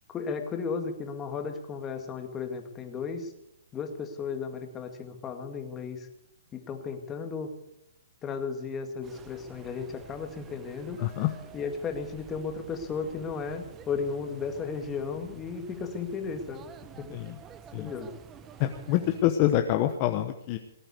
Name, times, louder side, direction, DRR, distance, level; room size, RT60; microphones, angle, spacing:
voice 1, 0.1-3.3 3.7-6.1 6.5-7.5 8.2-11.0 11.5-16.7 17.0-17.2 17.8-18.1, left 5 dB, 15° left, 5 dB, 2.0 m, -34 dB
sound 1, 9.0-19.2, right 7 dB, 15° right, 0.9 m, -50 dB
voice 2, 11.0-11.3 17.1-17.4 17.7-17.9 18.6-20.6, left 13 dB, 30° left, 7 dB, 1.0 m, -26 dB
19.0 x 8.8 x 8.3 m, 0.80 s
hypercardioid pair, 155°, 0 cm